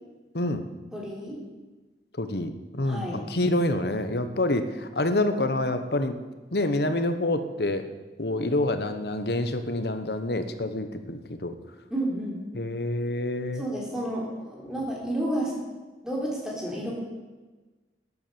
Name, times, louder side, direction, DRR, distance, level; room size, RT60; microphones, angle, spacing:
voice 1, 0.3-0.6 2.2-6.2 6.5-7.9 8.2-11.5 12.5-13.6, left 1 dB, 65° left, 9 dB, 1.2 m, -27 dB
voice 2, 0.9-1.4 2.9-3.2 11.9-12.4 13.6-15.6 16.0-16.9, right 1 dB, 5° right, -4 dB, 3.8 m, -31 dB
13.5 x 11.0 x 7.0 m, 1.3 s
head